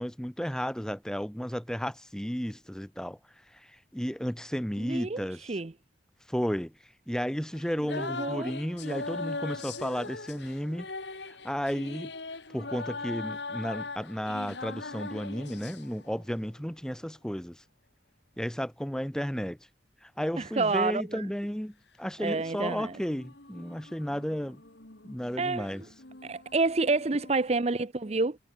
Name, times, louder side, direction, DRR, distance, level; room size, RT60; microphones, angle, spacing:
voice 1, 0.0-3.2 3.5-5.4 6.3-6.7 7.1-10.9 11.2-12.1 12.5-17.6 18.4-19.6 20.0-24.6 25.0-25.8, equal, 5° left, 1.0 m, -33 dB
voice 2, 4.8-5.7 8.0-8.5 20.4-21.3 22.2-23.0 25.4-25.9 26.2-28.4, right 3 dB, 35° right, 0.6 m, -29 dB
sound 1, 7.5-16.4 22.2-27.5, left 3 dB, 75° left, 3.0 m, -41 dB
head